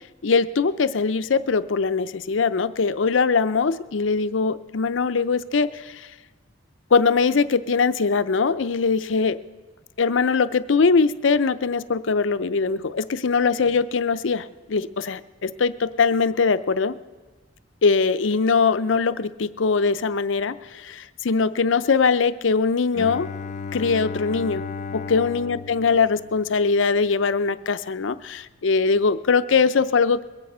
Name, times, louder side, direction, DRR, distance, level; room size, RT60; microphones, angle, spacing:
voice 1, 0.2-6.1 6.9-9.4 10.0-17.0 17.8-23.3 23.7-24.6 24.9-30.2, left 4 dB, 85° left, 14 dB, 0.6 m, -21 dB
Bowed string instrument, 22.9-26.9, left 5 dB, 40° left, 0.4 m, -34 dB
22.0 x 9.0 x 5.5 m, 1.3 s
head